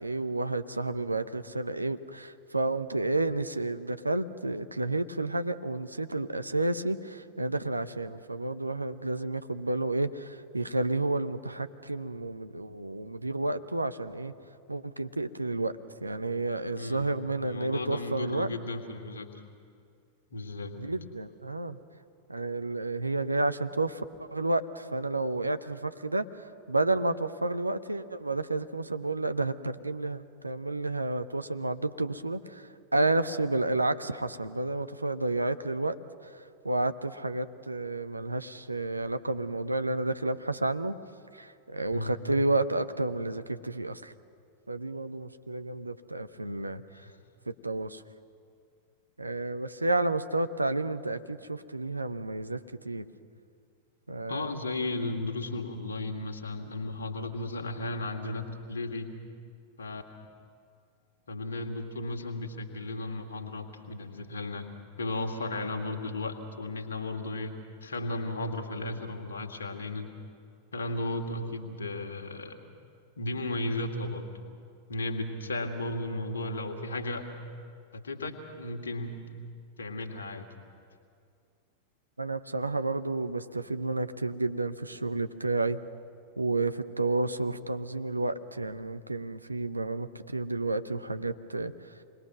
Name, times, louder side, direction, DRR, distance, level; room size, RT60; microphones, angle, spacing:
voice 1, 0.0-14.3 14.7-15.7 16.0-18.5 20.8-21.8 22.3-36.0 36.2-40.9 41.3-44.1 44.7-46.8 47.5-48.0 49.2-52.6 52.8-53.1 54.1-54.5 82.2-85.8 86.4-91.7, right 2 dB, 85° right, 10 dB, 0.8 m, -31 dB
voice 2, 16.8-17.2 17.4-19.3 20.3-20.8 41.9-42.2 47.0-47.1 54.3-59.1 59.8-60.0 61.3-64.7 65.0-67.5 67.8-70.1 70.7-72.6 73.2-74.3 74.9-77.3 77.9-79.2 79.8-80.5, left 2 dB, 70° left, 5 dB, 2.1 m, -35 dB
27.5 x 21.0 x 6.2 m, 2.3 s
figure-of-eight pair, 90°, 0 cm